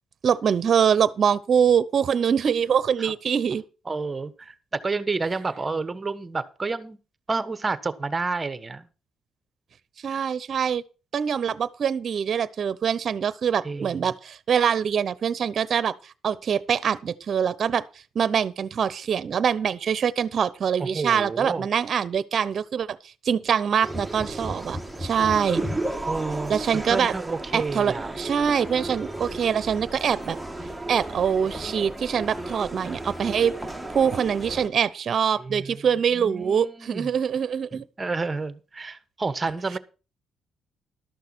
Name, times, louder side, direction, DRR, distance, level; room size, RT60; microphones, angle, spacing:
voice 1, 0.2-3.6 10.0-10.8 11.1-17.8 18.1-23.0 23.2-25.6 26.5-27.1 27.5-30.4 30.9-33.5 33.9-37.8, right 7 dB, 55° right, 0.8 m, -24 dB
voice 2, 3.9-4.5 4.8-7.0 7.3-8.9 10.1-10.3 13.6-14.0 20.8-21.7 26.1-28.1 35.4-35.8 36.1-37.1 37.7-39.8, right 3 dB, 25° right, 1.2 m, -30 dB
sound 1, 23.8-34.7, right 1 dB, 5° right, 1.5 m, -34 dB
12.5 x 6.6 x 6.2 m
cardioid pair, 90°, 0 cm